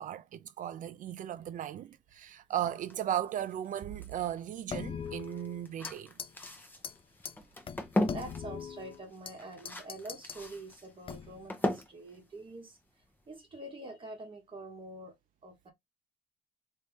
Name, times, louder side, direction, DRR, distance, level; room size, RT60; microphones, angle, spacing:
voice 1, 0.0-6.1, right 11 dB, 50° right, 0.5 m, -36 dB
sound 1, 2.5-13.4, left 1 dB, 10° left, 0.9 m, -39 dB
sound 2, 4.7-5.9 6.2-6.5 6.8-6.9 7.3-7.4 7.7-9.4 9.7-10.4 11.1-11.5, left 7 dB, 35° left, 0.5 m, -41 dB
voice 2, 8.1-12.8 13.3-15.2 15.4-15.7, right 2 dB, 30° right, 1.3 m, -46 dB
3.2 x 2.7 x 3.5 m
cardioid pair, 110°, 17 cm